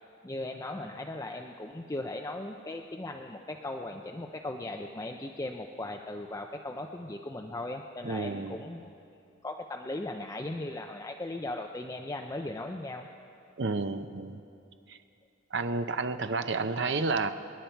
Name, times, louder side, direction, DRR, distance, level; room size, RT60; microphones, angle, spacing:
voice 1, 0.2-8.9 9.4-13.1, left 2 dB, 15° left, 3 dB, 0.5 m, -38 dB
voice 2, 8.0-8.6 13.6-14.4 14.9-15.0 15.5-17.3, right 3 dB, 60° right, 10 dB, 0.7 m, -30 dB
28.0 x 10.5 x 4.5 m, 2.6 s
head